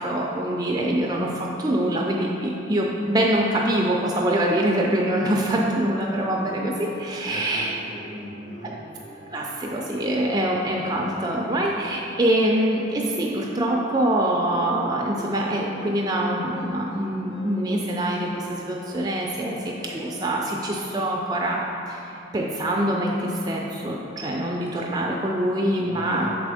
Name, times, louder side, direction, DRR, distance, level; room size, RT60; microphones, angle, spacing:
voice 1, 0.0-7.7 9.3-26.5, right 1 dB, 20° right, -1 dB, 0.4 m, -24 dB
sound 1, 5.4-20.3, equal, 55° left, 0.6 m, -44 dB
voice 2, 7.2-8.7 25.8-26.5, left 1 dB, 35° left, -6 dB, 1.5 m, -39 dB
6.7 x 4.1 x 4.8 m, 2.8 s
head